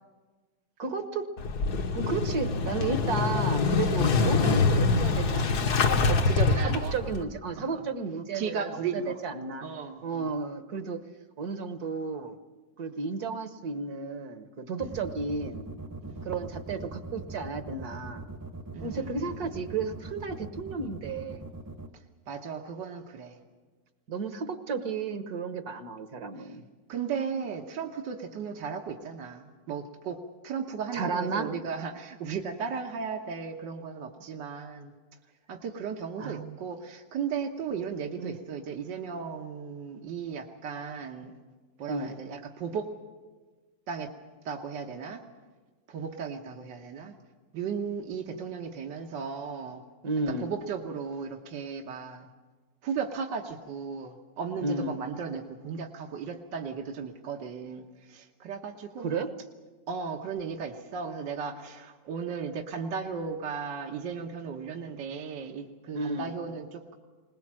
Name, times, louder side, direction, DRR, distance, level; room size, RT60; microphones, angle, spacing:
voice 1, 0.8-1.2 1.9-6.2 6.6-9.7 10.0-11.0 11.4-12.4 12.8-15.7 16.2-18.2 18.8-21.4 24.1-26.6 30.9-31.5 36.2-36.6 38.2-38.4 41.9-42.2 50.0-50.5 54.6-55.0 59.0-59.3 65.9-66.3, right 4 dB, 60° right, 9 dB, 1.6 m, -33 dB
Motorcycle / Engine starting, 1.4-7.2, left 4 dB, 60° left, 1.6 m, -25 dB
voice 2, 6.2-6.9 7.6-7.8 8.3-9.2 9.6-10.3 16.1-16.3 18.7-19.5 21.9-23.4 26.4-26.6 26.9-34.9 35.5-41.4 41.8-42.9 43.9-44.1 44.5-45.2 45.9-47.2 47.5-49.8 50.3-52.3 52.8-59.1 59.9-67.0, right 6 dB, 75° right, 3 dB, 1.8 m, -36 dB
sound 1, 14.8-21.9, right 3 dB, 15° right, 0.8 m, -41 dB
20.5 x 20.5 x 7.5 m, 1.3 s
omnidirectional pair, 2.0 m